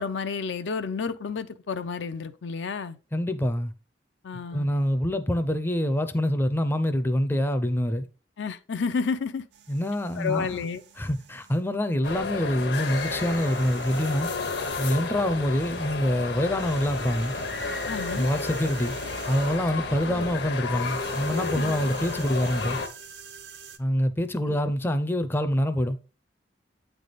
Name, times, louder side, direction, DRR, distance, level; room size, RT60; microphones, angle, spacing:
voice 1, 0.0-3.0 4.2-4.7 8.4-9.4 10.2-10.8 17.9-18.3 20.2-20.3 21.5-21.7 24.5-24.6, left 5 dB, 85° left, 0.5 m, -30 dB
voice 2, 3.1-3.7 4.5-8.1 9.7-10.6 11.0-14.3 14.8-17.3 18.2-18.9 19.3-22.8 23.8-26.0, equal, 10° left, 0.4 m, -26 dB
sound 1, 9.5-11.7 12.7-15.1 16.4-19.8 20.6-23.8, right 8 dB, 75° right, 0.7 m, -46 dB
sound 2, 12.0-22.9, left 3 dB, 65° left, 0.9 m, -32 dB
8.3 x 3.4 x 3.9 m
head